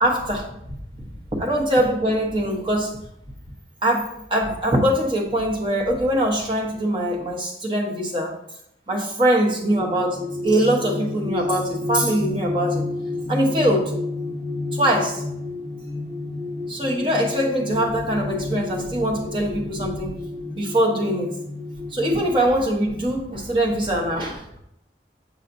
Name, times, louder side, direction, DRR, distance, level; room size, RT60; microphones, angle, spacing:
voice 1, 0.0-0.5 1.0-3.0 3.8-8.3 8.9-12.8 13.3-13.9 14.7-15.2 16.7-20.1 20.5-21.3 21.9-24.6, right 1 dB, 25° right, -1 dB, 1.0 m, -22 dB
sound 1, 9.4-22.2, left 2 dB, 40° left, 1.7 m, -30 dB
6.4 x 5.7 x 2.6 m, 0.78 s
head